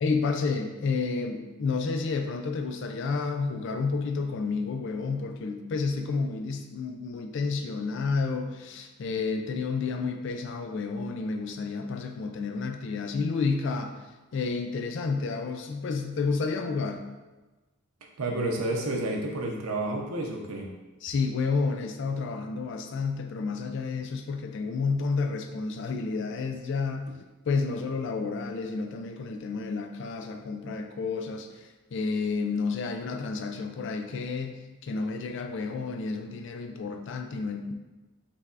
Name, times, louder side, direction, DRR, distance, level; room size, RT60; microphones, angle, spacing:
voice 1, 0.0-14.0 14.3-17.0 21.0-27.1 27.5-37.7, left 4 dB, 55° left, 5 dB, 0.3 m, -30 dB
voice 2, 18.2-20.7, right 2 dB, 85° right, 0 dB, 0.7 m, -30 dB
5.4 x 3.4 x 2.4 m, 1.2 s
head